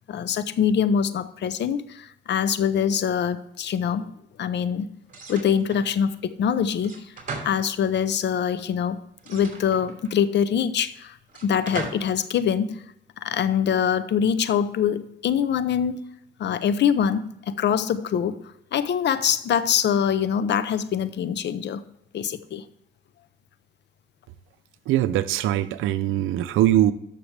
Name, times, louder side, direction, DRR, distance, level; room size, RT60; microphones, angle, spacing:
voice 1, 0.1-4.1 4.4-4.9 5.3-7.1 7.4-11.2 11.4-12.8 13.2-16.0 16.4-18.4 18.7-21.8 22.1-22.6, left 8 dB, 60° left, 14 dB, 0.7 m, -24 dB
sound 1, 5.1-5.9 6.8-8.1 9.2-10.2 11.3-12.2, right 4 dB, 40° right, 2.8 m, -38 dB
voice 2, 24.9-26.9, right 13 dB, 85° right, 14 dB, 0.6 m, -21 dB
13.0 x 6.0 x 3.3 m, 0.79 s
cardioid pair, 90°, 20 cm